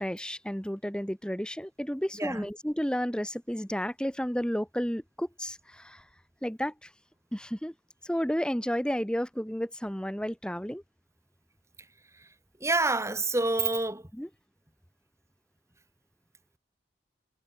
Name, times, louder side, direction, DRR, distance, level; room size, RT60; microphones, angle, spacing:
voice 1, 0.0-6.0 6.4-6.9 7.3-7.7 8.0-10.8 14.1-14.3, equal, 5° left, 2.2 m, -32 dB
voice 2, 12.6-14.0, right 2 dB, 15° right, 3.4 m, -27 dB
head